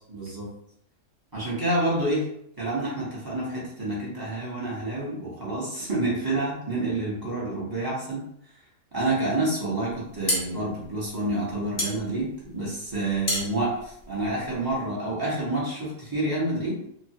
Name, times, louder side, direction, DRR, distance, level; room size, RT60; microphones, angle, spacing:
voice 1, 0.1-0.5 1.3-2.3 2.6-8.2 8.9-16.8, right 2 dB, 20° right, -7 dB, 0.7 m, -28 dB
sound 1, 9.9-14.8, left 1 dB, 50° left, 0.9 m, -32 dB
3.1 x 2.1 x 2.7 m, 0.71 s
omnidirectional pair, 1.7 m